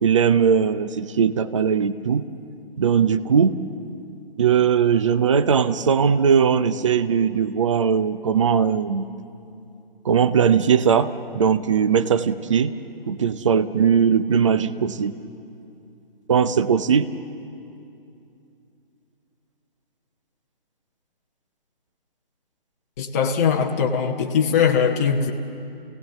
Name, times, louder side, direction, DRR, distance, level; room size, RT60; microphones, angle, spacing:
voice 1, 0.0-2.2 2.8-3.6 4.4-9.1 10.0-12.7 13.1-15.2 16.3-17.1, right 7 dB, 30° right, 13 dB, 0.5 m, -19 dB
voice 2, 23.0-25.3, left 7 dB, 15° left, 1 dB, 0.8 m, -21 dB
28.5 x 17.5 x 6.9 m, 2.6 s
figure-of-eight pair, 150°, 30 cm